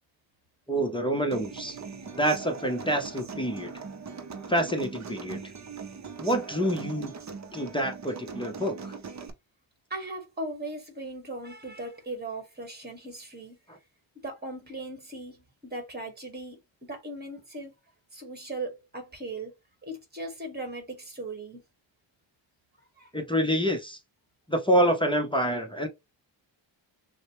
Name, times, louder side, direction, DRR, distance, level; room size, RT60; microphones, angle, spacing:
voice 1, 0.7-1.8 2.2-3.7 4.5-5.4 6.2-7.1 7.5-8.9 13.7-13.8 23.1-24.0 24.5-25.9, right 1 dB, 10° left, 0.7 m, -27 dB
Human voice / Acoustic guitar, 1.3-9.3, right 5 dB, 35° right, 0.7 m, -40 dB
voice 2, 9.9-13.6 14.2-17.7 18.1-19.5 19.8-21.6 23.0-23.1, right 2 dB, 20° right, 1.6 m, -38 dB
6.3 x 2.2 x 3.0 m
wide cardioid pair, 115°, 46 cm